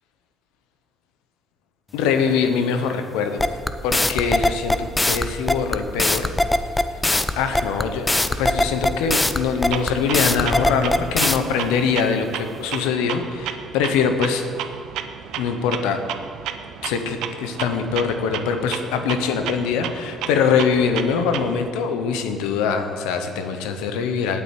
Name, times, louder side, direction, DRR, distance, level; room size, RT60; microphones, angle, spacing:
voice 1, 1.9-3.5 3.8-6.3 7.4-14.5 15.4-16.0 16.8-24.4, left 6 dB, 90° left, 7 dB, 1.0 m, -23 dB
sound 1, 3.4-11.4, left 2 dB, 15° left, 0.8 m, -20 dB
Clock, 9.7-21.7, right 9 dB, 80° right, 0.7 m, -33 dB
8.9 x 8.9 x 8.5 m, 2.2 s
supercardioid pair, 65°, 0 cm